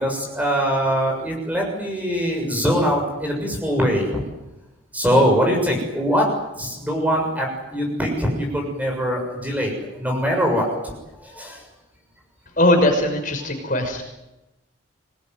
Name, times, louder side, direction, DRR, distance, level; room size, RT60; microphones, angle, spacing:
voice 1, 0.0-4.2 4.9-6.3 6.6-10.9 11.2-11.6, equal, 10° right, 1 dB, 6.8 m, -22 dB
voice 2, 12.6-14.0, left 1 dB, 40° left, 4 dB, 6.0 m, -19 dB
26.0 x 20.0 x 9.5 m, 0.98 s
head